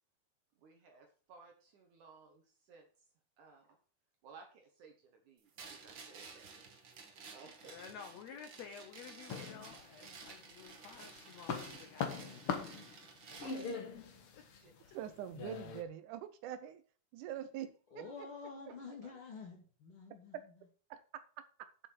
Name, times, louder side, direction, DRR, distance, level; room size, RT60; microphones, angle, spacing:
voice 1, 0.6-2.4 2.7-2.9 3.4-3.8 4.2-6.7 7.3-7.8 13.4-13.6 14.6-14.7 19.0-19.2, right 4 dB, 60° right, 3 dB, 2.6 m, -58 dB
sound 1, 5.6-13.8, right 4 dB, 45° right, 1.7 m, -53 dB
voice 2, 7.6-12.8 13.3-13.5 13.9-14.0 14.3-14.4, left 7 dB, 70° left, 6 dB, 1.7 m, -53 dB
sound 2, 9.3-10.3 10.7-15.8, left 5 dB, 55° left, 1.7 m, -42 dB
voice 3, 14.9-16.8 17.1-18.1 20.9-21.0, right 11 dB, 90° right, 11 dB, 1.7 m, -44 dB
voice 4, 17.9-20.4, left 5 dB, 35° left, 0 dB, 3.3 m, -49 dB
8.7 x 7.6 x 6.3 m, 0.41 s
omnidirectional pair, 4.4 m